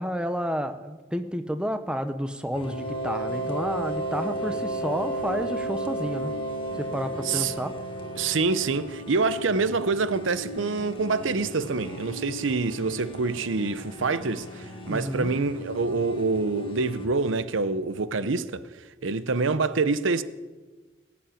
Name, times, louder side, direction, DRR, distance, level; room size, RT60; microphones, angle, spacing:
voice 1, 0.0-6.3 6.8-7.7 14.9-15.3, equal, 5° right, 0.7 m, -30 dB
sound 1, 2.5-9.2, right 1 dB, 55° left, 2.4 m, -32 dB
sound 2, 2.5-17.1, left 1 dB, 25° left, 1.5 m, -40 dB
voice 2, 8.2-18.6 19.0-20.2, right 4 dB, 85° right, 0.7 m, -26 dB
19.0 x 7.2 x 9.1 m
head